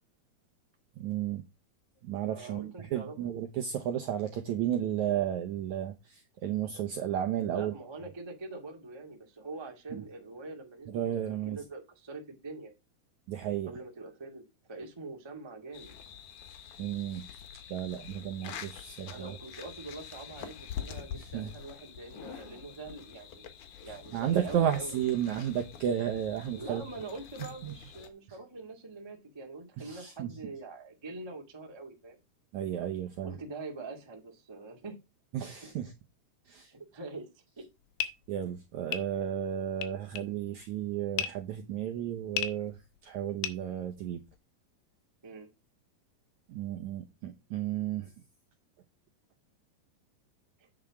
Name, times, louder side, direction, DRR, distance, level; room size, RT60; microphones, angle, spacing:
voice 1, 1.0-1.4 2.0-7.7 9.9-10.0 10.9-11.6 13.3-13.7 16.8-17.3 17.7-19.4 21.1-21.5 24.1-26.8 27.4-27.7 29.8-30.3 32.5-33.3 35.3-35.9 36.5-36.7 38.3-44.2 46.5-48.1, right 10 dB, 80° right, 1.7 m, -33 dB
voice 2, 2.2-3.4 7.3-12.7 13.6-15.9 19.0-23.5 23.8-25.0 26.5-32.2 33.2-35.0 35.4-35.7 36.7-37.3 37.6-37.7 45.2-45.5 50.6-50.7, right 3 dB, 25° right, 0.5 m, -44 dB
sound 1, 15.7-28.1, left 9 dB, 65° left, 2.1 m, -46 dB
sound 2, 37.6-44.4, left 10 dB, 85° left, 3.0 m, -38 dB
8.7 x 5.7 x 4.7 m
omnidirectional pair, 4.5 m